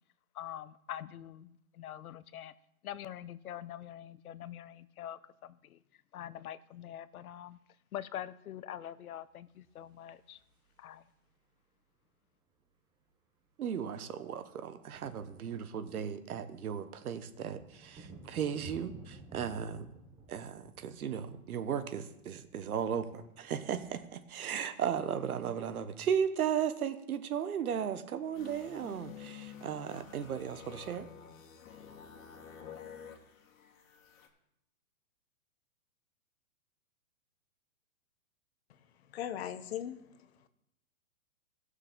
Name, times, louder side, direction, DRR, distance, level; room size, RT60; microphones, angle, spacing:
voice 1, 0.3-2.5 2.8-5.8 6.1-7.6 7.9-10.4 10.8-11.1, left 11 dB, 85° left, 16 dB, 0.7 m, -44 dB
sound 1, 9.7-11.3 12.6-12.7 12.9-13.1 13.4-25.5, right 3 dB, 10° right, 0.7 m, -56 dB
voice 2, 13.6-19.9 20.3-31.1, right 8 dB, 85° right, 11 dB, 1.1 m, -36 dB
sound 2, 28.3-34.3, left 8 dB, 65° left, 1.7 m, -50 dB
voice 3, 39.1-40.5, left 10 dB, 45° left, 11 dB, 0.9 m, -40 dB
17.5 x 6.5 x 3.7 m, 0.79 s
hypercardioid pair, 155°, 43 cm